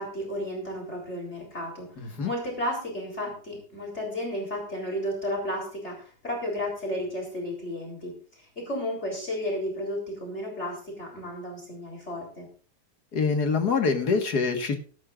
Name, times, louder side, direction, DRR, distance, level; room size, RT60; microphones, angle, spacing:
voice 1, 0.0-12.5, equal, 40° left, 0 dB, 4.2 m, -33 dB
voice 2, 2.0-2.3 13.1-14.7, left 4 dB, 65° left, 5 dB, 2.2 m, -25 dB
16.5 x 12.5 x 2.5 m, 0.40 s
omnidirectional pair, 1.8 m